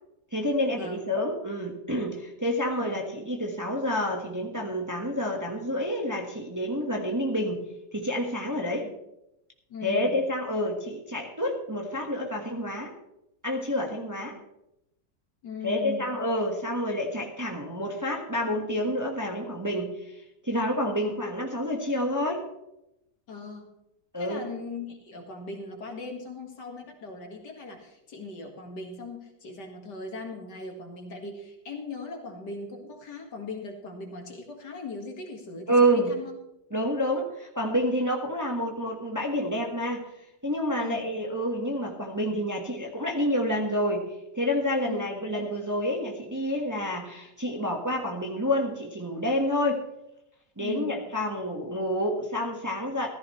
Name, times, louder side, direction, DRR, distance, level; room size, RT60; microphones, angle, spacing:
voice 1, 0.3-7.6 7.9-8.9 9.8-12.9 13.4-14.4 15.6-22.4 24.1-24.4 35.7-36.1 36.7-40.1 40.4-49.8 50.6-53.1, equal, 10° right, 0 dB, 1.4 m, -28 dB
voice 2, 9.7-10.2 14.3-14.4 15.4-16.1 23.3-23.7 24.2-36.3 40.8-41.1 44.8-45.0 50.6-51.0, left 3 dB, 70° left, 2 dB, 2.5 m, -39 dB
15.5 x 14.0 x 3.2 m, 0.85 s
omnidirectional pair, 1.9 m